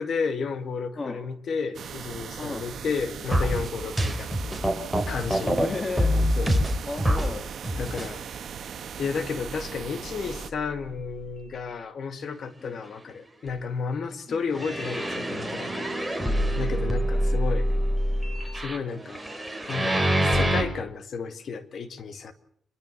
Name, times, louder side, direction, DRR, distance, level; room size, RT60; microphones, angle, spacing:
voice 1, 0.0-4.3 5.1-5.6 6.4-6.6 7.7-8.2 9.0-17.8 18.5-19.2 19.7-22.3, left 5 dB, 60° left, 2.1 m, -32 dB
sound 1, 1.7-10.5, right 8 dB, 70° right, 1.4 m, -39 dB
sound 2, 3.3-5.7 6.0-7.3 7.6-8.1 8.6-8.7 9.4-9.5 10.0-10.1 14.5-20.6, equal, ahead, 4.6 m, -25 dB
voice 2, 5.6-6.1 6.9-7.5 12.6-12.8 14.3-14.4 16.2-16.6, left 3 dB, 30° left, 2.4 m, -34 dB
26.5 x 21.5 x 6.6 m
cardioid pair, 85°, 0 cm